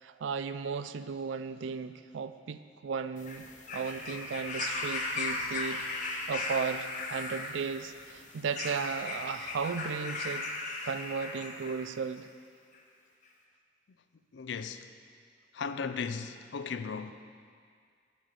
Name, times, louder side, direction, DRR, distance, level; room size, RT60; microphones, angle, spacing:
voice 1, 0.0-3.4 3.7-10.5 10.8-12.3, right 5 dB, 90° right, 0.4 m, -35 dB
sound 1, 3.2-11.8 12.7-12.8, left 3 dB, 40° left, 1.0 m, -37 dB
voice 2, 14.3-14.9 15.5-17.1, left 5 dB, 75° left, 0.4 m, -36 dB
7.2 x 6.4 x 7.5 m
head